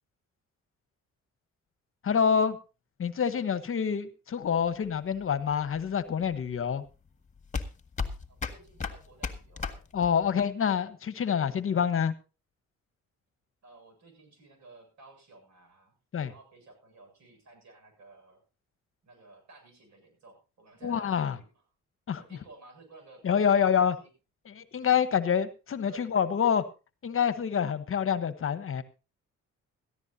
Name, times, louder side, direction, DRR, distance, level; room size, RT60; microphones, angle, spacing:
voice 1, 2.0-2.6 3.0-6.8 9.9-12.1 16.1-16.3 20.8-21.4 22.1-22.2 23.2-23.9 24.5-26.6 27.0-28.8, left 7 dB, 45° left, 13 dB, 1.1 m, -27 dB
sound 1, 4.5-10.4, left 5 dB, 25° left, 1.7 m, -37 dB
voice 2, 8.3-9.9 13.6-15.9 16.3-18.4 19.0-21.6 22.2-24.1 25.8-26.1, right 3 dB, 65° right, 5 dB, 7.4 m, -54 dB
17.0 x 14.0 x 2.8 m, 0.32 s
cardioid pair, 90°, 30 cm